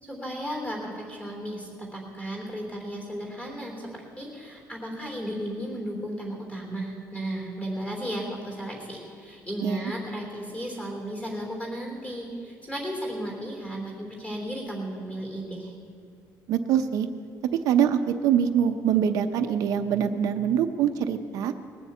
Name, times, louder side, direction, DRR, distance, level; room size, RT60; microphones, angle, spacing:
voice 1, 0.0-15.7, equal, 20° left, 0 dB, 3.2 m, -34 dB
voice 2, 16.5-17.1 17.6-21.5, right 8 dB, 65° right, 7 dB, 0.6 m, -24 dB
19.5 x 7.2 x 8.1 m, 2.3 s
cardioid pair, 170°, 7 cm